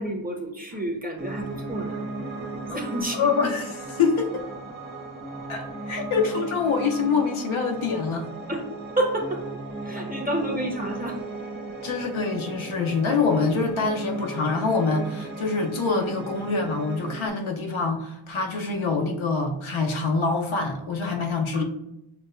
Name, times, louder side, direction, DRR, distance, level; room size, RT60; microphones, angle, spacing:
voice 1, 0.0-2.0 2.7-3.2 6.1-6.4 8.5-8.7 9.0-9.5 9.8-11.2 21.5-21.6, right 1 dB, 20° right, 0 dB, 0.9 m, -29 dB
Piano, 1.2-17.3, right 2 dB, 75° right, 1.3 m, -36 dB
voice 2, 3.1-4.4 5.5-8.3 10.0-10.1 11.8-21.6, left 4 dB, 90° left, 2 dB, 0.8 m, -25 dB
6.0 x 2.2 x 2.5 m, 0.86 s
wide cardioid pair, 65°, 47 cm